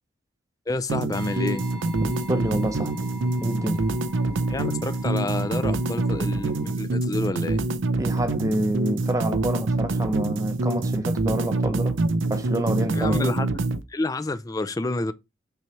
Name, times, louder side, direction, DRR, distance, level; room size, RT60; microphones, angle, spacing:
voice 1, 0.7-1.6 4.5-7.6 12.9-15.1, left 2 dB, 20° left, 0.4 m, -29 dB
sound 1, 0.9-13.8, right 2 dB, 85° right, 0.6 m, -26 dB
sound 2, 1.1-6.8, left 1 dB, 55° right, 1.4 m, -44 dB
voice 2, 2.0-2.9 3.4-3.9 8.0-12.0 12.3-13.2, right 1 dB, 15° right, 0.7 m, -27 dB
6.9 x 3.2 x 4.6 m
head